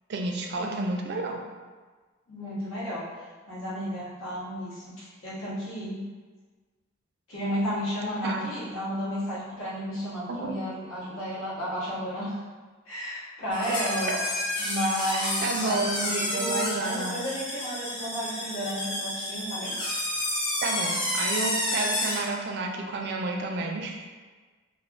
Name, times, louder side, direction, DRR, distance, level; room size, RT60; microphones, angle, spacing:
voice 1, 0.1-1.4 8.2-8.5 10.3-10.5 14.1-14.2 15.4-17.2 20.6-24.1, right 3 dB, 55° right, 1 dB, 0.3 m, -31 dB
voice 2, 2.3-3.0 3.5-6.0 7.3-12.4 12.9-14.1 14.6-19.8, equal, 85° left, -9 dB, 1.1 m, -32 dB
sound 1, 13.5-22.3, left 1 dB, 25° left, 0.5 m, -30 dB
3.2 x 2.0 x 2.4 m, 1.4 s
head